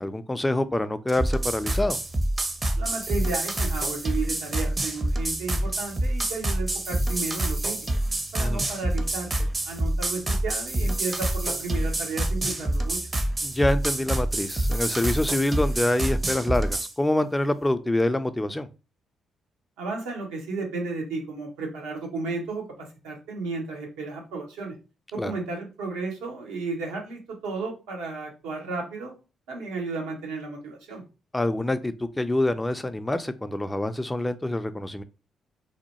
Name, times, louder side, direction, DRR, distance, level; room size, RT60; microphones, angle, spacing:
voice 1, 0.0-2.0 8.4-8.6 13.4-18.7 25.2-25.3 31.3-35.0, left 1 dB, 15° left, 0.4 m, -26 dB
sound 1, 1.1-16.9, right 1 dB, 30° right, 0.6 m, -27 dB
voice 2, 2.8-7.8 8.3-13.0 19.8-24.8 25.1-29.1 29.5-31.0, right 3 dB, 80° right, 0.8 m, -33 dB
2.7 x 2.1 x 2.9 m
hypercardioid pair, 45°, 0 cm